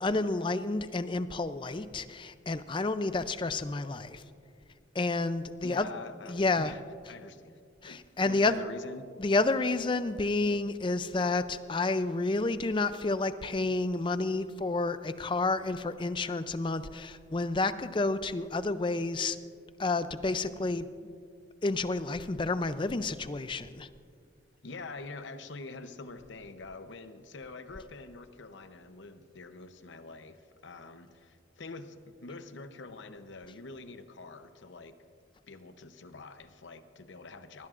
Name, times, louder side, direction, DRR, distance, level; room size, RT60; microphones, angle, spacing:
voice 1, 0.0-4.2 4.9-5.9 6.3-6.7 7.8-8.6 9.2-19.4 19.8-20.9 21.6-23.9, left 3 dB, 25° left, 12 dB, 0.4 m, -30 dB
voice 2, 5.6-6.8 7.1-9.1 24.6-35.0 35.5-37.7, left 3 dB, 70° left, 9 dB, 0.8 m, -45 dB
20.0 x 18.5 x 2.5 m, 2.3 s
head